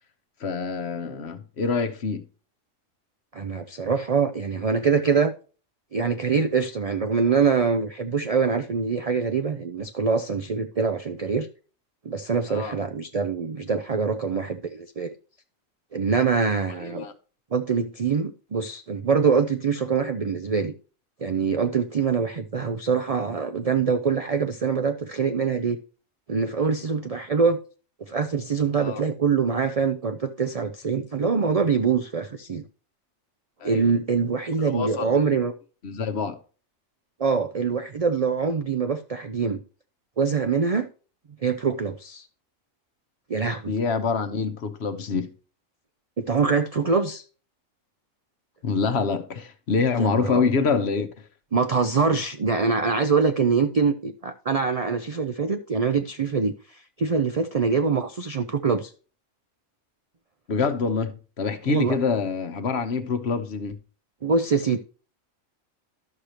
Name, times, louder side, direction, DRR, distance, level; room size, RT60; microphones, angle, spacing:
voice 1, 0.4-2.3 12.5-12.7 16.8-17.1 28.8-29.0 33.6-33.8 34.6-35.3 35.8-36.4 43.7-45.3 48.6-51.3 60.5-63.8, left 5 dB, 55° left, 1.1 m, -26 dB
voice 2, 3.3-5.3 5.9-11.5 12.0-15.1 15.9-17.1 17.5-20.7 21.2-25.8 26.3-27.6 28.0-32.6 33.6-35.5 37.2-39.6 40.2-40.9 41.4-42.3 43.3-43.7 46.2-47.2 50.0-50.4 51.5-58.9 61.7-62.0 64.2-64.8, right 5 dB, 60° right, 0.4 m, -24 dB
12.0 x 6.5 x 2.9 m
omnidirectional pair, 1.4 m